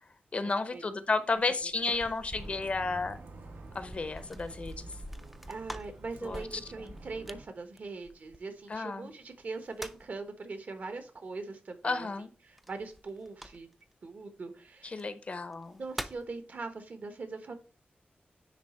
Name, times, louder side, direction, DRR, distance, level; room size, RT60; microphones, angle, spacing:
voice 1, 0.3-3.2 3.7-5.0 6.2-6.9 8.7-9.1 11.8-12.3 14.8-15.8, left 3 dB, 40° left, 11 dB, 0.6 m, -32 dB
sound 1, 1.3-8.8 9.4-10.2 12.6-13.9 14.9-15.0 15.5-16.3, equal, 5° right, 0.4 m, -46 dB
Bus, 2.3-7.4, right 2 dB, 80° right, 1.4 m, -48 dB
voice 2, 5.5-12.1 12.4-13.7 14.0-15.1 15.8-17.5, right 3 dB, 55° right, 8 dB, 1.2 m, -41 dB
9.9 x 3.3 x 4.3 m, 0.37 s
wide cardioid pair, 175°, 3 cm